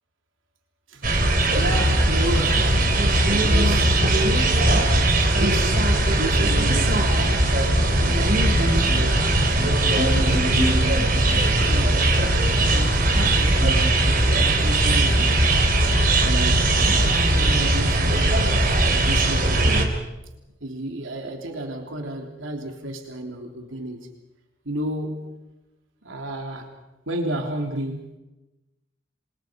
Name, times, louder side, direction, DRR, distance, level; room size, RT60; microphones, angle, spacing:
sound 1, 1.0-19.8, right 1 dB, 45° right, 3.9 m, -19 dB
voice 1, 1.5-2.8 3.3-4.0 4.5-5.8 6.1-7.5 8.0-8.4 8.9-11.0 11.6-12.2 12.5-13.9 14.2-15.6 16.0-18.5 18.9-19.9 20.6-24.1 24.6-25.4 26.0-26.7 27.1-28.2, right 1 dB, 90° right, 2 dB, 3.4 m, -32 dB
27.0 x 27.0 x 5.2 m, 1.0 s
head